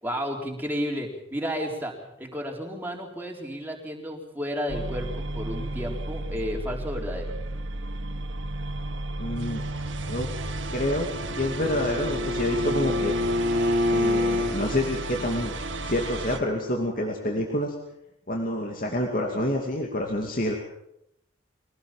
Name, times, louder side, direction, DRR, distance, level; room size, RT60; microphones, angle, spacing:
voice 1, 0.0-7.3, equal, 10° right, 0 dB, 3.9 m, -32 dB
sound 1, 4.7-16.4, right 2 dB, 65° right, 1.9 m, -33 dB
voice 2, 9.2-9.6 10.1-10.3 10.7-11.1 11.3-13.1 13.9-15.5 15.8-17.7 18.3-20.5, left 1 dB, 40° left, 1 dB, 2.6 m, -28 dB
Bowed string instrument, 10.8-14.6, left 2 dB, 45° right, 2.8 m, -27 dB
23.5 x 18.0 x 7.4 m, 0.80 s
head